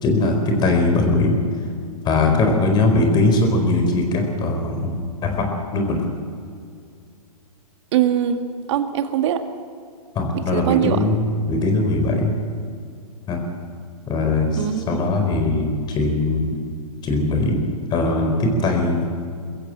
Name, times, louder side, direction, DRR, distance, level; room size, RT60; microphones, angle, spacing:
voice 1, 0.0-1.3 2.0-5.0 5.2-6.1 10.1-11.2 11.5-12.3 13.3-13.4 14.1-16.6 17.0-17.6 17.9-19.1, left 2 dB, 20° left, 4 dB, 4.5 m, -20 dB
voice 2, 7.9-8.4 8.7-9.5 10.3-11.0 14.6-15.2, right 10 dB, 50° right, 8 dB, 1.9 m, -22 dB
23.0 x 15.5 x 7.4 m, 2.3 s
hypercardioid pair, 130°, 19 cm